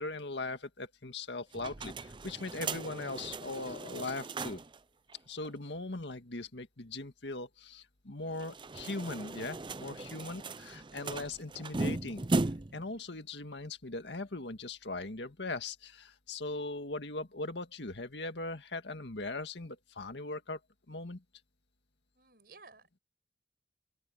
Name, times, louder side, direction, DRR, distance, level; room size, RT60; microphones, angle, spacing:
voice 1, 0.0-4.6 5.3-12.2 12.7-20.6 20.9-21.2, left 2 dB, 85° left, 1.9 m, -40 dB
sound 1, 1.5-4.8 5.1-5.2 5.4-5.5 8.3-12.9, right 2 dB, 30° right, 0.6 m, -37 dB
voice 2, 22.1-23.0, right 4 dB, 60° right, 6.0 m, -57 dB
open air
head